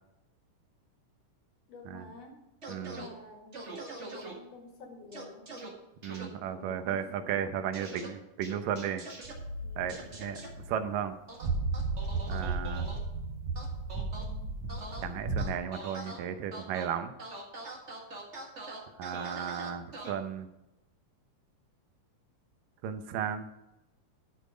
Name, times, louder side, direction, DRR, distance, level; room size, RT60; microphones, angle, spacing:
voice 1, 1.7-5.7 6.4-7.5 9.6-10.5, left 3 dB, 75° left, 1 dB, 3.6 m, -51 dB
sound 1, 2.6-3.1 3.5-4.3 5.1-5.7 6.0-6.3 7.7-8.1 8.4-9.3 9.9-10.5 11.3-13.0 13.6-14.2 14.7-15.0 15.4-16.2 16.5-16.9 17.2-20.1, right 2 dB, 30° right, 1.4 m, -43 dB
voice 2, 2.7-3.0 6.0-9.0 9.8-10.4 10.7-11.1 12.3-12.9 15.0-17.1 19.0-20.5 22.8-23.5, right 8 dB, 85° right, 9 dB, 2.5 m, -34 dB
sound 2, 9.2-10.9 11.4-15.4, right 3 dB, 70° right, 2.8 m, -34 dB
12.0 x 6.9 x 5.0 m, 0.92 s
omnidirectional pair, 3.8 m